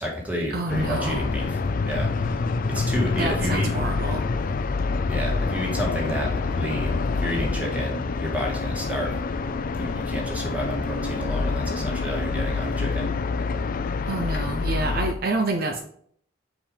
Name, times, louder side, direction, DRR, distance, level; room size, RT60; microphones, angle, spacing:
voice 1, 0.0-3.7 5.1-9.2 9.8-13.1, equal, 10° right, -2 dB, 1.9 m, -30 dB
voice 2, 0.5-1.3 3.2-4.2 14.1-15.8, right 2 dB, 55° right, 4 dB, 0.7 m, -27 dB
sound 1, 0.7-15.1, left 4 dB, 45° left, 0.4 m, -27 dB
5.4 x 5.1 x 5.1 m, 0.63 s
head